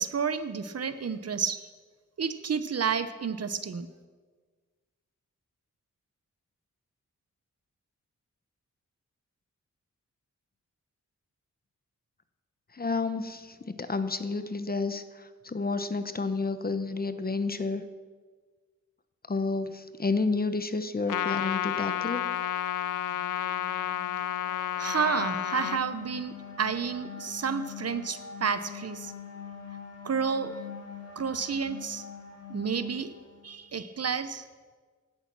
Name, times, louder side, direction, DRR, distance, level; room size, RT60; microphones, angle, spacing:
voice 1, 0.0-1.6 2.2-3.9 24.8-29.1 30.0-30.6 31.2-32.0 32.5-33.1 33.4-34.4, right 6 dB, 50° right, 12 dB, 0.9 m, -30 dB
voice 2, 12.7-17.8 19.3-22.2, left 3 dB, 30° left, 11 dB, 0.8 m, -30 dB
Trumpet, 21.1-25.8, left 11 dB, 80° left, 0.5 m, -31 dB
sound 1, 23.2-33.6, left 6 dB, 60° left, 3.3 m, -44 dB
16.5 x 11.5 x 6.1 m, 1.5 s
wide cardioid pair, 135°, 31 cm